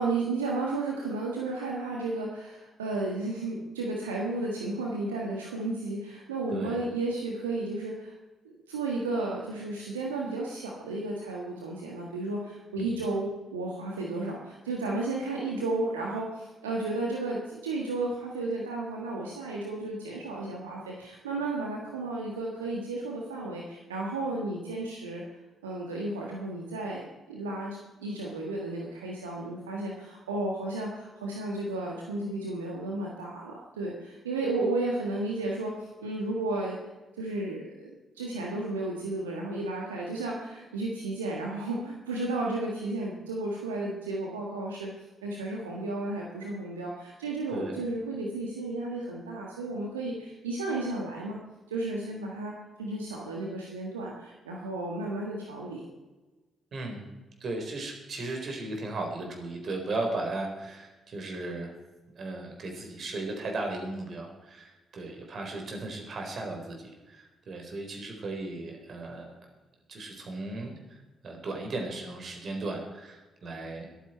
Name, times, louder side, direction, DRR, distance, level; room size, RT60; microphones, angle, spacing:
voice 1, 0.0-8.1 8.4-25.2 25.6-27.0 27.3-36.8 37.2-44.9 45.2-51.4 51.7-55.9, right 2 dB, 85° right, -2 dB, 1.6 m, -33 dB
voice 2, 56.7-57.0 57.4-61.7 62.2-69.3 69.9-71.0 71.2-73.9, right 2 dB, 50° right, 2 dB, 4.3 m, -36 dB
22.0 x 9.4 x 4.4 m, 1.2 s
figure-of-eight pair, 40°, 0 cm